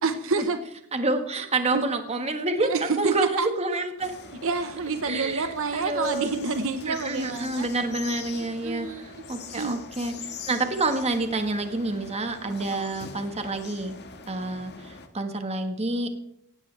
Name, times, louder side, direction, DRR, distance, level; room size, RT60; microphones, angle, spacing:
voice 1, 0.0-0.6 1.7-1.8 2.6-3.5 4.4-7.7 8.4-9.2 9.6-9.8 12.7-12.9, right 4 dB, 65° right, 8 dB, 1.1 m, -28 dB
voice 2, 0.9-4.1 5.0-6.3 6.9-8.9 9.3-10.1 10.5-14.0 14.3-16.1, right 2 dB, 30° right, 6 dB, 1.6 m, -28 dB
sound 1, 4.0-15.1, left 5 dB, 50° left, 1.6 m, -43 dB
17.5 x 16.5 x 3.4 m, 0.70 s
head